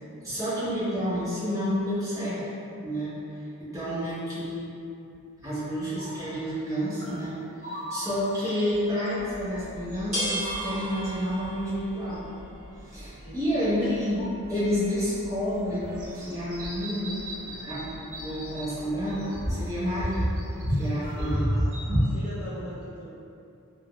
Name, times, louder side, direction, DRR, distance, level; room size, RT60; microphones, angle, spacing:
voice 1, 0.2-2.4 2.8-4.8 5.4-12.3 12.8-14.2 14.5-20.3 20.7-21.5, equal, 15° right, -12 dB, 0.9 m, -30 dB
sound 1, 6.0-6.4 7.0-8.8 9.1-9.9 10.2-11.1 12.1-12.2 13.4-14.3 15.3-15.4 15.8-18.7 19.0-22.2, equal, 60° right, 1.0 m, -32 dB
sound 2, 9.2-20.6, right 1 dB, 30° right, 1.3 m, -40 dB
voice 2, 13.2-13.7 21.0-23.1, equal, 80° left, -12 dB, 0.9 m, -41 dB
3.4 x 2.1 x 2.3 m, 2.6 s
head